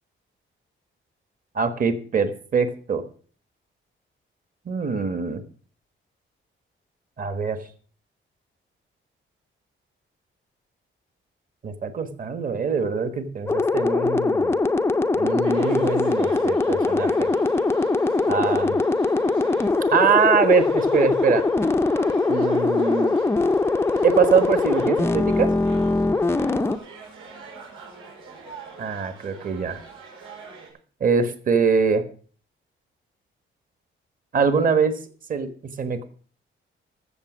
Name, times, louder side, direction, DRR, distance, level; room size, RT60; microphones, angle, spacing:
voice 1, 1.5-3.0 4.7-5.4 7.2-7.6 11.6-14.5 15.2-17.3 18.3-18.8 19.9-21.4 22.3-23.2 24.0-25.5 28.8-29.8 31.0-32.0 34.3-35.0 35.3-36.0, right 5 dB, 40° right, 10 dB, 1.3 m, -23 dB
sound 1, 13.5-26.8, left 3 dB, 10° left, 0.4 m, -22 dB
sound 2, 15.4-30.7, right 4 dB, 80° right, 6.8 m, -43 dB
14.0 x 7.3 x 6.2 m, 0.43 s
wide cardioid pair, 180°, 21 cm